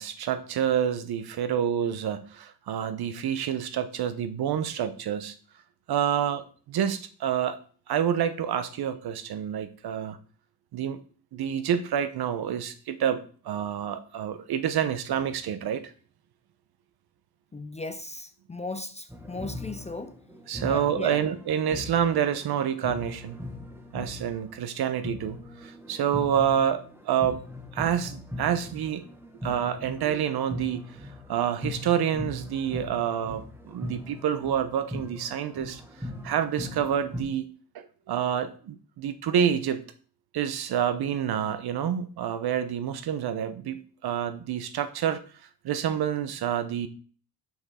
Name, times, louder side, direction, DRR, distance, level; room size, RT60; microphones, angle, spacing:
voice 1, 0.0-5.3 5.9-7.6 7.9-10.2 10.7-11.0 11.3-15.9 20.5-23.4 23.9-27.4 27.7-29.0 29.4-30.8 31.3-35.8 36.2-37.5 37.7-39.8 40.3-45.2 45.6-46.9, right 9 dB, 60° right, 0.9 m, -28 dB
voice 2, 17.5-20.2 20.6-21.2, left 3 dB, 15° left, 0.5 m, -37 dB
sound 1, 19.1-24.7 25.0-37.2, left 1 dB, 5° right, 1.2 m, -40 dB
5.9 x 5.8 x 4.3 m
cardioid pair, 95°, 42 cm